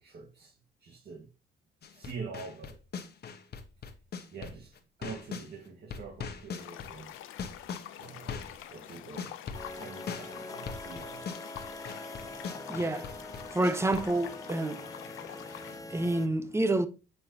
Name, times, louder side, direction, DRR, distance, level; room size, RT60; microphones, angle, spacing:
voice 1, 0.0-1.3 1.9-2.8 4.3-7.1 8.0-9.4 9.7-11.3 12.4-12.8, right 5 dB, 55° right, 1.9 m, -45 dB
sound 1, 1.8-5.5 5.9-14.1, left 6 dB, 55° left, 1.3 m, -40 dB
sound 2, 6.6-15.8, left 11 dB, 90° left, 0.8 m, -46 dB
sound 3, 9.5-16.3, left 1 dB, 15° left, 1.0 m, -44 dB
voice 2, 12.7-13.1 13.5-14.8 15.3-15.4 15.9-16.9, right 2 dB, 15° right, 1.0 m, -28 dB
9.0 x 6.0 x 3.0 m
cardioid pair, 90°, 20 cm